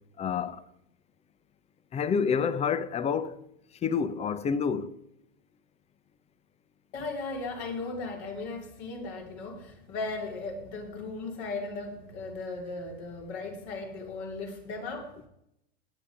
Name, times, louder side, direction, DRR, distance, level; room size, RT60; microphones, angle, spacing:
voice 1, 0.2-0.6 1.9-3.4 3.8-5.0, left 6 dB, 20° left, 0.8 m, -28 dB
voice 2, 6.9-15.2, left 3 dB, 55° left, 3.7 m, -37 dB
19.0 x 8.7 x 5.1 m
hypercardioid pair, 115°, 30 cm